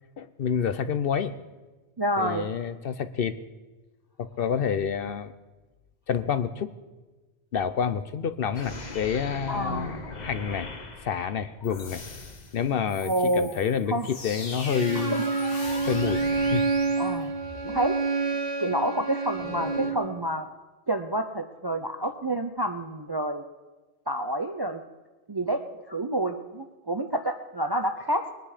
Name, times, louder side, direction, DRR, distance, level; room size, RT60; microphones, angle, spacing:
voice 1, 0.2-1.3 2.2-3.3 4.2-5.3 6.1-6.7 7.5-10.7 11.0-12.0 12.5-15.2 15.9-16.7, left 7 dB, 60° left, 11 dB, 0.8 m, -28 dB
voice 2, 2.0-2.5 9.5-10.1 13.0-13.6 13.9-14.1 14.9-15.3 15.5-15.6 17.0-17.3 17.6-18.0 18.6-20.5 20.9-23.4 24.1-24.8 25.3-28.3, right 1 dB, 30° right, 7 dB, 0.4 m, -28 dB
sound 1, 8.5-13.9 14.2-17.8 19.3-19.9, left 3 dB, 40° left, 1.2 m, -41 dB
sound 2, 14.0-17.8, left 3 dB, 80° left, 1.9 m, -40 dB
Bowed string instrument, 14.6-20.1, right 4 dB, 70° right, 2.5 m, -28 dB
21.0 x 10.0 x 5.0 m, 1.2 s
omnidirectional pair, 1.2 m